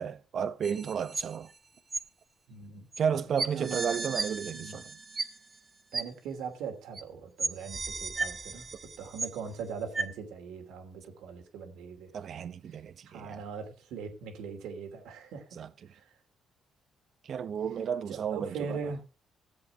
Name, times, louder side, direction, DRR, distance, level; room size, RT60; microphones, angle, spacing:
voice 1, 0.0-1.5 3.0-5.0 12.1-13.4 15.5-15.9 17.2-18.8, right 7 dB, 60° right, 1.0 m, -33 dB
sound 1, 0.6-1.6 1.9-2.0 2.9-3.0 3.4-5.6 5.9-6.0 6.9-7.0 7.4-9.6 9.9-10.0, right 4 dB, 30° right, 1.3 m, -35 dB
voice 2, 2.5-3.2 3.5-3.8 4.5-4.8 5.9-12.1 13.1-15.5 15.9-16.0 18.1-19.0, right 5 dB, 90° right, 2.9 m, -40 dB
14.5 x 7.9 x 4.7 m
cardioid pair, 90°, 0 cm